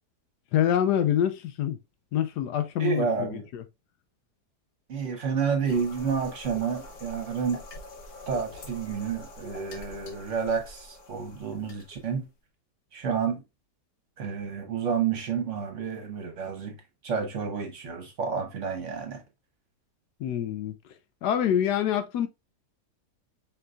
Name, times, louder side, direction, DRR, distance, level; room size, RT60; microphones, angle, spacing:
voice 1, 0.5-1.8 2.1-3.6 20.2-20.8 21.2-22.3, left 10 dB, 90° left, 1.2 m, -26 dB
voice 2, 2.8-3.4 4.9-7.6 8.3-12.3 12.9-13.4 14.2-16.8 17.0-19.2, right 6 dB, 50° right, 1.2 m, -30 dB
sound 1, 5.7-12.2, left 2 dB, 65° left, 1.4 m, -45 dB
4.6 x 3.9 x 2.3 m
omnidirectional pair, 1.7 m